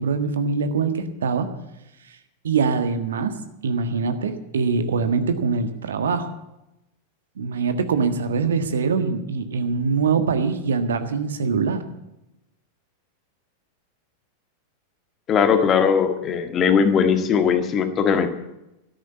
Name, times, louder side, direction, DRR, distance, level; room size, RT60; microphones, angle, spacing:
voice 1, 0.0-1.5 2.4-3.4 3.6-6.3 7.4-11.8, right 5 dB, 65° right, 9 dB, 1.6 m, -23 dB
voice 2, 15.3-18.3, left 6 dB, 30° left, 8 dB, 1.8 m, -19 dB
13.5 x 11.0 x 8.4 m, 0.90 s
figure-of-eight pair, 90°, 0 cm